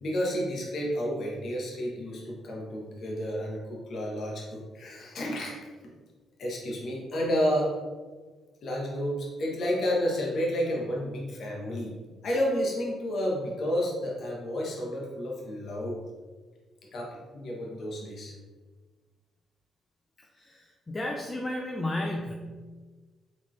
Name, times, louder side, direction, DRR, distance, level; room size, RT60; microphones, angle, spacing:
voice 1, 0.0-5.6 6.4-7.8 8.6-11.9 12.2-16.0 16.9-18.3, equal, 60° left, -3 dB, 1.1 m, -31 dB
voice 2, 20.9-22.3, left 1 dB, 20° left, 0 dB, 0.6 m, -32 dB
4.1 x 3.9 x 3.1 m, 1.4 s
cardioid pair, 90°, 0 cm